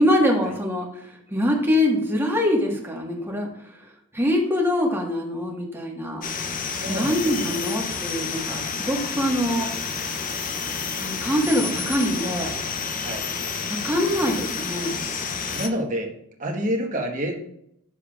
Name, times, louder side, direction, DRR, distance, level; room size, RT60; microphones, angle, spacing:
voice 1, 0.0-3.8 4.1-6.2 6.8-9.7 11.0-12.5 13.8-15.0, left 1 dB, 10° right, -1 dB, 1.5 m, -24 dB
sound 1, 6.2-15.7, left 5 dB, 40° left, 0.7 m, -30 dB
voice 2, 6.7-7.6 8.4-8.7 12.9-13.3 15.3-16.1 16.4-17.4, equal, 35° right, 1 dB, 1.3 m, -29 dB
10.0 x 6.9 x 2.4 m, 0.73 s
head